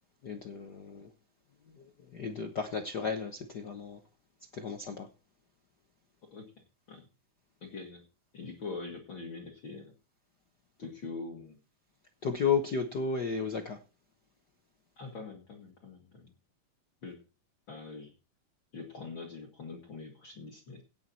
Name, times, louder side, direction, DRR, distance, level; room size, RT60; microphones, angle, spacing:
voice 1, 0.2-1.1 2.1-4.0 4.5-5.1 12.2-13.8, left 5 dB, 65° left, 1.0 m, -33 dB
voice 2, 6.3-7.0 7.6-8.0 8.3-9.9 10.8-11.6 15.0-16.3 17.0-17.2 17.7-18.1 18.7-20.8, left 4 dB, 45° left, 2.3 m, -43 dB
17.5 x 7.7 x 4.2 m
omnidirectional pair, 3.5 m